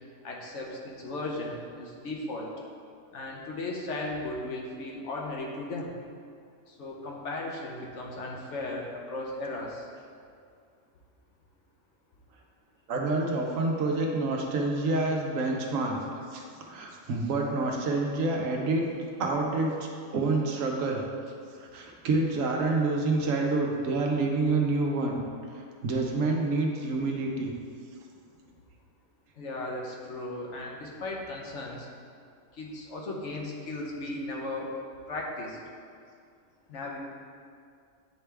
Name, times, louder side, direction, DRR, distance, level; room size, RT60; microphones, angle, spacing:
voice 1, 0.2-2.5 3.1-5.9 6.7-9.9 29.4-31.9 32.6-34.7 35.1-35.6 36.7-37.0, left 2 dB, 65° left, -1 dB, 1.1 m, -36 dB
voice 2, 12.9-16.4 16.7-18.8 19.2-21.0 21.6-25.2 25.8-27.5, right 3 dB, 75° right, 1 dB, 1.1 m, -28 dB
9.0 x 3.4 x 3.3 m, 2.2 s
omnidirectional pair, 1.4 m